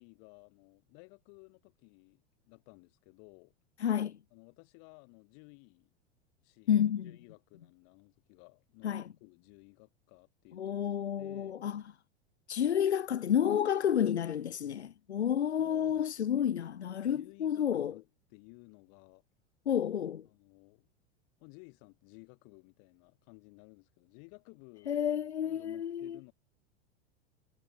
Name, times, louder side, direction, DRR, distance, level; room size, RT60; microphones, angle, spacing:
voice 1, 0.0-3.5 4.3-5.9 6.4-6.8 7.0-10.8 11.2-11.6 15.6-16.6 17.1-19.2 20.2-20.9 21.4-25.0 25.4-26.3, left 40 dB or more, 55° left, 6.3 m, -57 dB
voice 2, 3.8-4.2 6.7-7.1 8.8-9.0 10.5-11.8 12.5-17.9 19.7-20.3 24.9-26.2, left 9 dB, 90° left, 0.8 m, -30 dB
hypercardioid pair, 90°, 32 cm